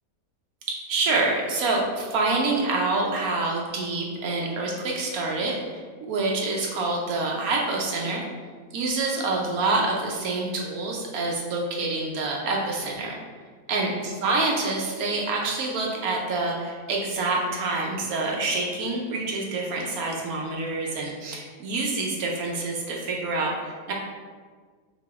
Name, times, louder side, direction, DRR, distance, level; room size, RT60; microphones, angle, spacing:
voice 1, 0.9-5.8 6.1-8.2 8.7-13.1 13.7-23.9, right 3 dB, 70° right, -1 dB, 0.9 m, -27 dB
5.7 x 2.8 x 2.4 m, 1.5 s
omnidirectional pair, 1.9 m